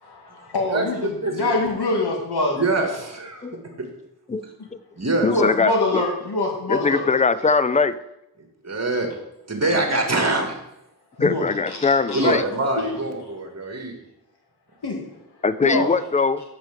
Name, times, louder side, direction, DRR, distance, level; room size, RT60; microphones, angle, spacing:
voice 1, 0.0-2.6 3.7-3.8 4.6-4.7 5.3-7.1 9.7-9.8 11.1-12.4 12.8-13.3 14.8-15.0 15.6-15.9, left 2 dB, 85° left, 0 dB, 2.0 m, -25 dB
voice 2, 0.7-1.6 2.6-3.5 5.0-5.3 8.6-9.1 9.5-10.5 12.1-13.9, right 2 dB, 40° right, 3 dB, 2.0 m, -24 dB
voice 3, 5.2-6.0 6.7-8.0 11.2-12.4 15.4-16.4, left 4 dB, 20° left, 15 dB, 0.4 m, -21 dB
6.5 x 6.0 x 7.5 m, 0.86 s
wide cardioid pair, 75°, 39 cm